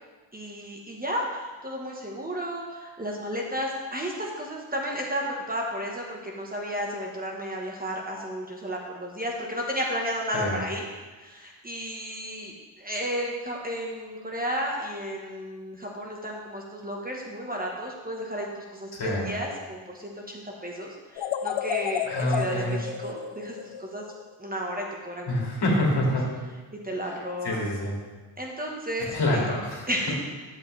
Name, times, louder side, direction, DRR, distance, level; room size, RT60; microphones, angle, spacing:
voice 1, 0.3-10.9 11.2-24.0 24.4-25.5 26.8-27.7 28.4-29.5 29.9-30.2, equal, 20° right, -1 dB, 1.3 m, -33 dB
voice 2, 18.9-19.3 22.1-22.8 25.3-26.3 27.4-27.9 29.1-29.9, left 1 dB, 50° left, -3 dB, 2.6 m, -26 dB
sound 1, 21.2-24.3, left 8 dB, 70° left, 0.6 m, -32 dB
11.0 x 7.6 x 3.3 m, 1.3 s
cardioid pair, 105°, 48 cm